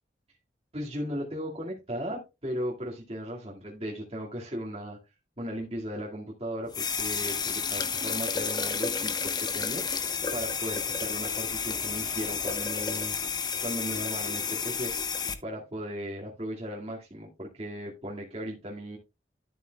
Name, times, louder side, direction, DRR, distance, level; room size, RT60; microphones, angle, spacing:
voice 1, 0.7-5.0 5.4-14.9 15.4-19.0, equal, 35° right, 2.1 m, -37 dB
sound 1, 6.7-15.4, left 6 dB, 25° left, 1.0 m, -31 dB
12.5 x 7.8 x 2.3 m
head